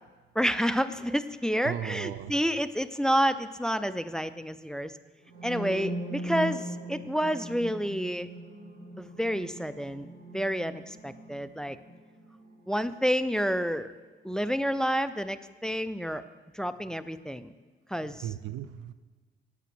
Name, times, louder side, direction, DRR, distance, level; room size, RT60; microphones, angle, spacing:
voice 1, 0.4-5.0 5.4-8.3 9.0-10.1 10.3-11.8 12.7-13.9 14.2-16.2 16.5-17.5 17.9-18.3, equal, 5° left, 13 dB, 0.4 m, -29 dB
voice 2, 1.6-2.3 18.2-18.9, right 11 dB, 90° right, 15 dB, 0.5 m, -35 dB
sound 1, 5.2-13.1, right 1 dB, 50° right, 3.3 m, -40 dB
9.1 x 8.3 x 6.1 m, 1.4 s
cardioid pair, 90°, 20 cm